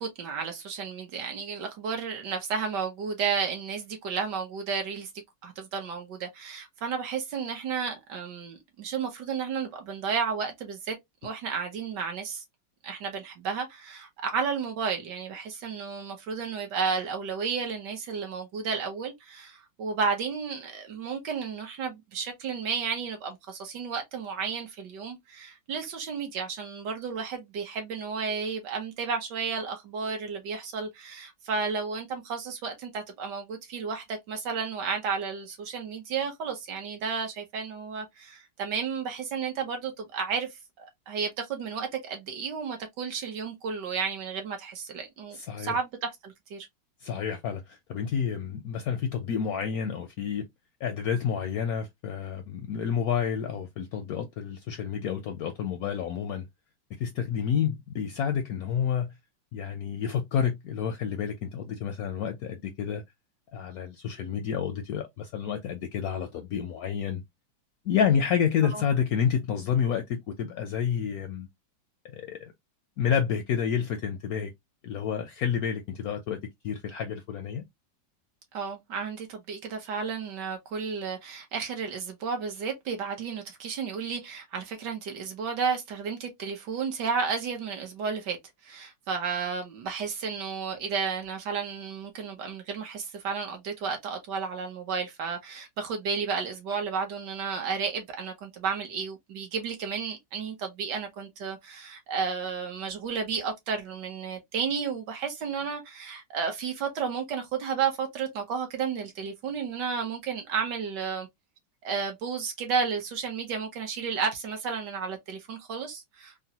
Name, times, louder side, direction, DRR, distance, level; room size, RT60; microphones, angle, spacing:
voice 1, 0.0-5.1 5.4-11.0 11.2-12.4 12.8-40.5 40.8-46.7 68.7-68.8 78.5-88.4 88.6-111.3 111.8-116.3, right 6 dB, 70° right, 1.4 m, -32 dB
voice 2, 45.3-45.8 47.0-50.4 50.8-56.5 57.0-59.1 59.5-63.0 63.5-67.2 67.9-71.5 72.1-72.5 73.0-74.5 74.8-76.4 76.6-77.6, left 7 dB, 75° left, 0.8 m, -29 dB
3.7 x 2.1 x 2.7 m
omnidirectional pair, 2.0 m